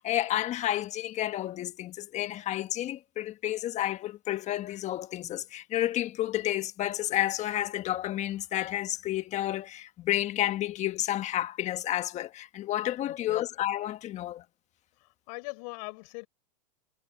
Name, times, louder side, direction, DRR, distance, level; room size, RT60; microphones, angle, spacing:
voice 1, 0.0-14.4, left 13 dB, 35° left, 1.5 m, -31 dB
voice 2, 13.1-13.4 15.0-16.3, left 30 dB, 55° left, 4.3 m, -41 dB
hypercardioid pair, 120°, 21 cm